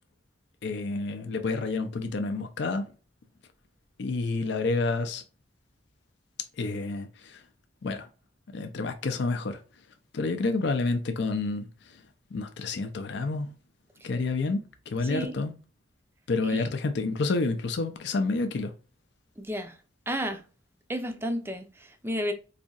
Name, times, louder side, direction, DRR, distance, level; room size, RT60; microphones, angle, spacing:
voice 1, 0.6-2.9 4.0-5.2 6.6-7.4 7.8-8.1 8.5-9.6 10.1-11.7 12.3-13.5 14.0-15.5 16.3-18.7, left 3 dB, 65° left, 0.5 m, -29 dB
voice 2, 19.4-19.7 20.1-20.4 20.9-22.3, equal, 15° right, 0.5 m, -32 dB
4.1 x 2.7 x 2.3 m
head